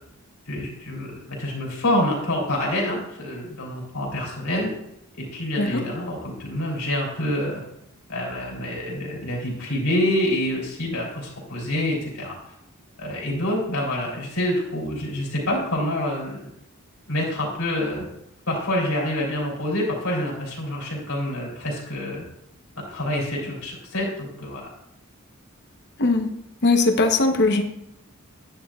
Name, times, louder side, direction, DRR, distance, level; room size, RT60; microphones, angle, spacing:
voice 1, 0.5-4.7 5.1-7.6 8.1-12.3 13.0-16.5 17.1-18.0 18.5-22.2 22.9-24.7, left 1 dB, 75° left, -3 dB, 3.4 m, -27 dB
voice 2, 26.6-27.6, left 3 dB, 50° left, 5 dB, 0.9 m, -19 dB
10.0 x 10.0 x 2.4 m, 0.80 s
head